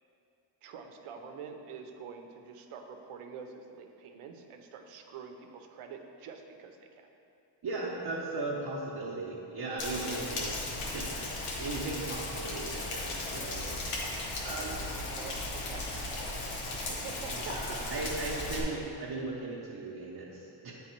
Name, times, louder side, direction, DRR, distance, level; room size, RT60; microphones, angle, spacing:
voice 1, 0.6-7.1 12.4-12.5 14.4-15.8 16.1-16.4 16.9-18.1, right 6 dB, 85° right, 4 dB, 0.7 m, -46 dB
voice 2, 7.6-11.3 11.6-13.9 14.4-14.8 17.4-20.7, right 2 dB, 50° right, -5 dB, 0.8 m, -37 dB
Rain, 9.8-18.6, left 2 dB, 90° left, 1.1 m, -36 dB
8.3 x 3.5 x 4.4 m, 2.6 s
cardioid pair, 125°, 50 cm